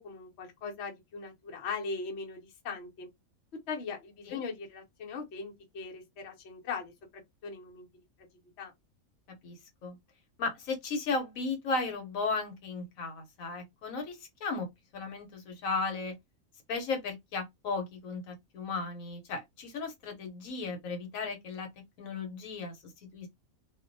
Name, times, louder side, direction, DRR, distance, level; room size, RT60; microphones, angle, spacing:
voice 1, 0.0-3.1 3.7-6.9 7.4-7.9 8.6-8.7, left 5 dB, 60° left, 1.0 m, -39 dB
voice 2, 10.4-14.7 14.9-16.1 16.7-21.7 22.0-22.7 23.1-23.3, left 3 dB, 80° left, 1.1 m, -35 dB
2.5 x 2.1 x 2.6 m
omnidirectional pair, 1.4 m